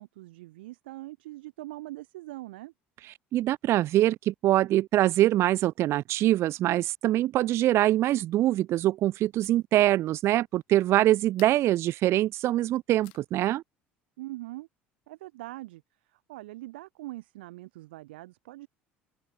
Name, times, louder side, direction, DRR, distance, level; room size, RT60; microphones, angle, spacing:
voice 1, 0.0-2.7 14.2-14.7 15.1-15.8 16.1-18.7, right 18 dB, 75° right, 1.1 m, -42 dB
voice 2, 3.3-13.6, right 14 dB, 50° right, 0.4 m, -24 dB
sound 1, 8.0-13.6, left 35 dB, 70° left, 4.2 m, -61 dB
open air
hypercardioid pair, 65°, 6 cm